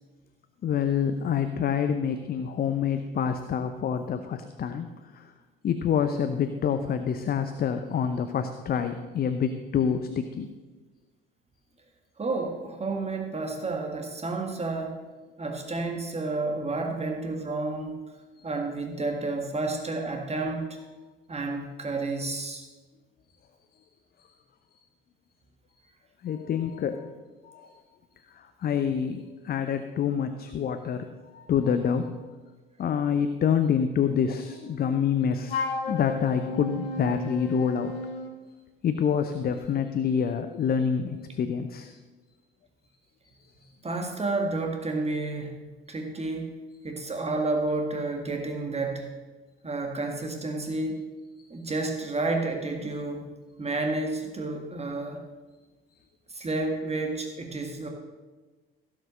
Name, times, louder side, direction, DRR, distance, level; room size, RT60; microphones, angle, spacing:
voice 1, 0.6-5.3 5.6-10.5 18.4-18.5 24.2-24.3 24.7-24.8 26.2-27.1 27.4-27.7 28.3-32.1 32.8-37.9 38.8-41.9 43.4-43.7 51.4-51.7, left 7 dB, 30° left, 9 dB, 0.7 m, -27 dB
voice 2, 12.2-15.0 15.4-17.9 18.4-20.7 21.3-22.7 43.8-45.6 45.9-46.5 46.8-49.1 49.6-51.0 51.5-53.3 53.6-55.2 56.3-57.9, right 3 dB, 20° right, 2 dB, 1.8 m, -30 dB
Wind instrument woodwind instrument, 35.5-38.3, left 3 dB, 70° left, 1.3 m, -33 dB
16.5 x 6.1 x 6.4 m, 1.3 s
figure-of-eight pair, 55°, 29 cm